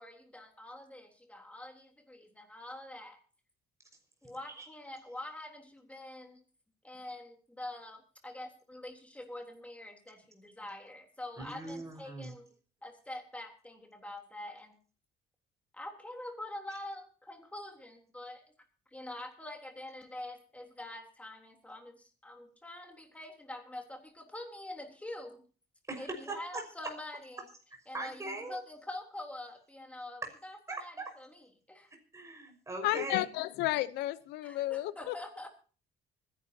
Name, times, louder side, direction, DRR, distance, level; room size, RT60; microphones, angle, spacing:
voice 1, 0.0-3.2 4.2-6.4 6.8-12.5 12.8-14.8 15.7-18.4 18.9-25.4 26.0-27.5 27.9-31.3 31.7-31.9 34.4-35.5, left 1 dB, 10° left, 3.5 m, -45 dB
voice 2, 11.4-12.3 25.9-26.6 27.9-28.6 30.7-31.1 32.1-33.2, right 2 dB, 15° right, 5.8 m, -40 dB
voice 3, 32.8-35.1, left 16 dB, 90° left, 0.9 m, -32 dB
25.0 x 11.0 x 2.9 m
cardioid pair, 110°, 17 cm